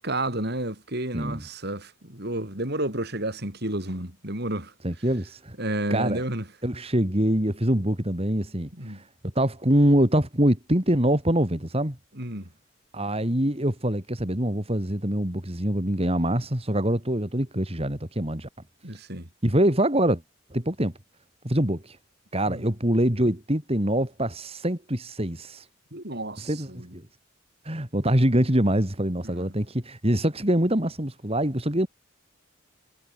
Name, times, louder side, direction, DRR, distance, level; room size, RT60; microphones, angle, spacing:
voice 1, 0.0-4.7 5.6-6.5 8.7-9.0 12.1-12.5 18.8-19.3 22.5-22.7 25.9-27.0 29.2-29.5, right 1 dB, 50° right, 7.8 m, -31 dB
voice 2, 4.8-5.5 5.9-6.2 6.6-9.0 9.3-12.0 12.9-18.5 19.4-20.2 20.5-20.9 21.4-22.0 22.3-25.7 26.4-27.0 27.6-31.9, right 1 dB, 30° right, 3.3 m, -24 dB
head